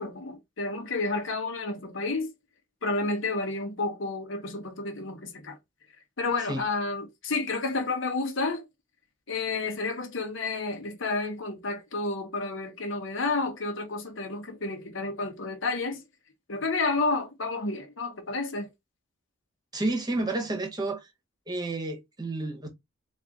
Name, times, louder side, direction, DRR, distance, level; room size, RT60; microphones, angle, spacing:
voice 1, 0.0-2.3 2.8-5.6 6.2-8.6 9.3-16.0 16.5-18.7, left 3 dB, 65° left, 1.1 m, -30 dB
voice 2, 19.7-21.1 21.5-22.7, right 2 dB, 20° right, 1.1 m, -30 dB
4.0 x 2.5 x 3.8 m
head